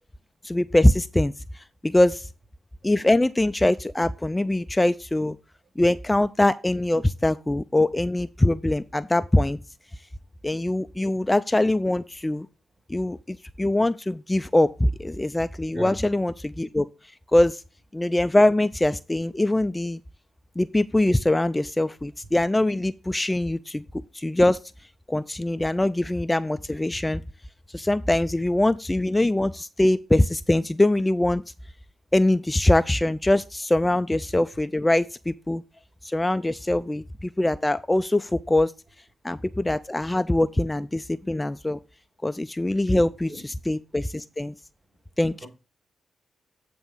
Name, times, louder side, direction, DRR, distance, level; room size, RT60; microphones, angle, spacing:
voice 1, 0.4-2.3 2.8-5.4 5.8-9.6 10.4-12.5 12.9-16.9 17.3-17.6 17.9-20.0 20.6-23.8 24.1-24.6 25.1-27.2 27.7-31.4 32.1-35.6 36.0-38.7 39.2-41.8 42.2-44.5 45.2-45.5, left 1 dB, 15° left, 0.4 m, -23 dB
voice 2, 15.7-16.1 35.7-35.8 43.3-43.4 45.4-45.5, right 1 dB, 45° right, 4.3 m, -38 dB
8.8 x 3.5 x 5.5 m
supercardioid pair, 50°, 0 cm